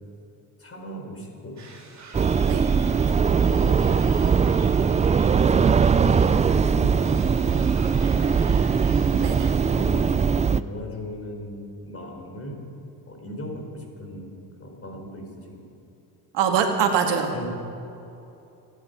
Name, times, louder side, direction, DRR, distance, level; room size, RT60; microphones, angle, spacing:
voice 1, 0.6-1.5 2.7-3.8 5.3-8.5 9.6-12.6 13.1-14.3 14.6-15.6 16.4-16.6 17.3-17.5, left 1 dB, 30° left, 1 dB, 4.6 m, -38 dB
sound 1, 1.6-10.3, right 4 dB, 40° right, 3.3 m, -44 dB
sound 2, 2.1-10.6, right 6 dB, 20° right, 0.4 m, -20 dB
voice 2, 9.2-9.5 16.3-17.3, right 7 dB, 75° right, 4 dB, 1.9 m, -23 dB
27.0 x 9.8 x 5.4 m, 2.8 s
supercardioid pair, 75°, 43 cm